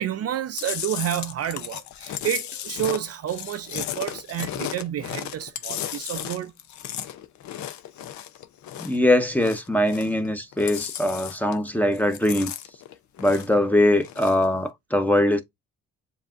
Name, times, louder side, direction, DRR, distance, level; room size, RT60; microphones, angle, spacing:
voice 1, 0.0-6.5, right 11 dB, 55° right, 0.5 m, -30 dB
Chewing mastication, 0.6-9.0 9.3-10.3 10.5-11.7 11.9-13.6 14.0-14.4, left 11 dB, 70° left, 0.6 m, -35 dB
voice 2, 8.8-12.5 13.2-15.4, left 1 dB, 5° left, 0.8 m, -22 dB
7.3 x 2.7 x 2.4 m
cardioid pair, 90°, 30 cm